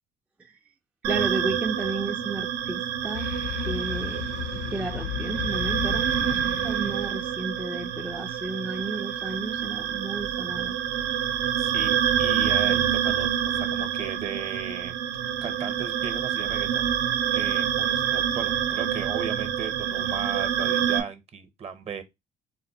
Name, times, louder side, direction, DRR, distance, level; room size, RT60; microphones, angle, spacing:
voice 1, 1.0-3.3 3.6-4.2 4.6-10.8, right 2 dB, 10° right, 0.3 m, -33 dB
sound 1, 1.0-21.0, right 9 dB, 85° right, 0.6 m, -27 dB
sound 2, 3.1-8.1, left 10 dB, 65° left, 0.5 m, -35 dB
voice 2, 11.6-14.9 15.4-16.9 17.3-22.0, right 7 dB, 40° right, 0.8 m, -36 dB
4.0 x 2.5 x 2.7 m
cardioid pair, 110°, 17 cm